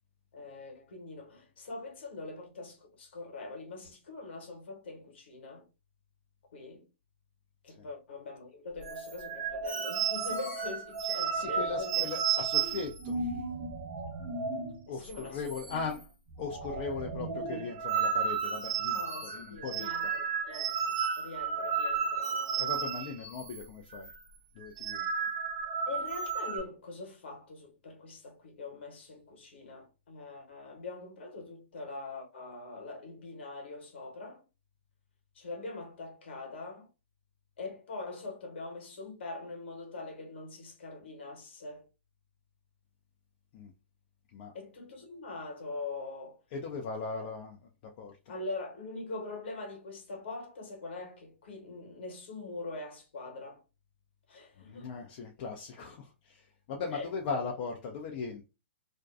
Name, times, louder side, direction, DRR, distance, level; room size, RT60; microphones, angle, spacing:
voice 1, 0.3-5.7 6.5-6.9 7.6-12.1 14.9-15.4 18.9-22.9 25.9-34.4 35.3-36.9 37.6-41.9 44.5-46.4 47.1-47.3 48.3-53.6 54.3-55.0 56.9-57.1, left 3 dB, 70° left, 1.1 m, -43 dB
sound 1, 8.8-14.8 15.0-15.2 15.5-16.0 16.3-23.7 23.9-24.1 24.6-26.6, right 6 dB, 45° right, 0.8 m, -33 dB
voice 2, 11.3-13.4 14.9-16.1 16.4-20.1 22.5-24.1 24.5-25.1 43.5-43.7 44.3-44.5 46.5-47.7 48.0-48.3 54.6-58.4, left 5 dB, 45° left, 0.5 m, -39 dB
2.5 x 2.2 x 2.4 m
hypercardioid pair, 120°, 6 cm